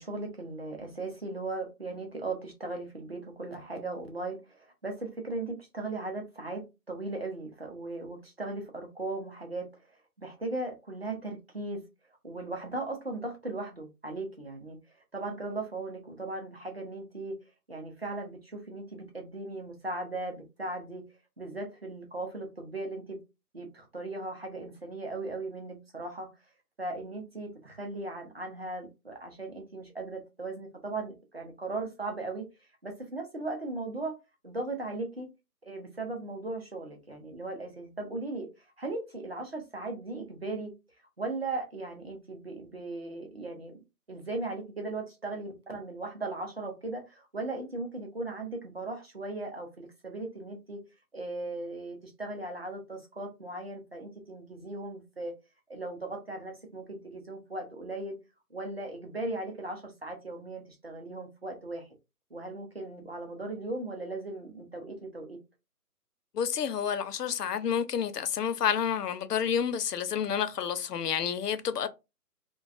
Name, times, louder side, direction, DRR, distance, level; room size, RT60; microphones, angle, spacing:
voice 1, 0.0-6.6 6.9-9.7 10.2-11.8 12.2-14.8 15.1-17.4 17.7-21.0 21.4-23.2 23.5-26.3 26.8-32.5 32.8-34.2 34.4-35.3 35.6-38.5 38.8-40.7 41.2-43.8 44.1-50.8 51.1-55.3 55.7-58.2 58.5-61.9 62.3-65.4, right 2 dB, 40° right, 0.5 m, -37 dB
voice 2, 66.3-71.9, left 8 dB, 80° left, 0.6 m, -29 dB
2.4 x 2.2 x 2.4 m
hypercardioid pair, 180°, 47 cm